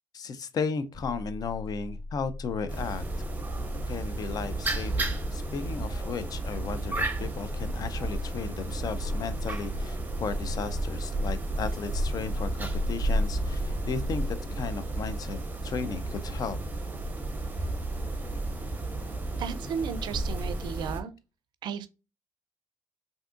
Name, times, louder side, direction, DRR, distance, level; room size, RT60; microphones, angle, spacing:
voice 1, 0.1-3.0 3.9-16.6, left 5 dB, 50° left, 0.4 m, -35 dB
sound 1, 0.9-11.0, left 2 dB, 15° left, 1.8 m, -40 dB
sound 2, 2.7-21.0, right 1 dB, 20° right, 0.7 m, -32 dB
voice 2, 19.4-21.1 21.6-21.9, right 7 dB, 60° right, 0.4 m, -34 dB
3.5 x 2.6 x 2.5 m
hypercardioid pair, 55°, 8 cm